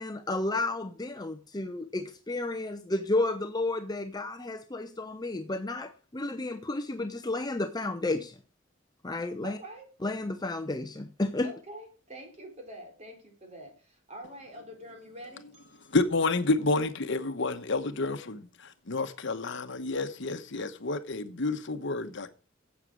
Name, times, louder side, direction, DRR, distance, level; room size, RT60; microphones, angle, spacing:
voice 1, 0.0-8.3 9.0-9.6 10.0-11.5, left 2 dB, 20° left, 0.8 m, -32 dB
voice 2, 9.4-9.8 11.4-16.0, right 1 dB, 35° right, 3.9 m, -46 dB
voice 3, 15.9-22.3, left 3 dB, 65° left, 1.1 m, -29 dB
11.5 x 8.3 x 6.3 m
head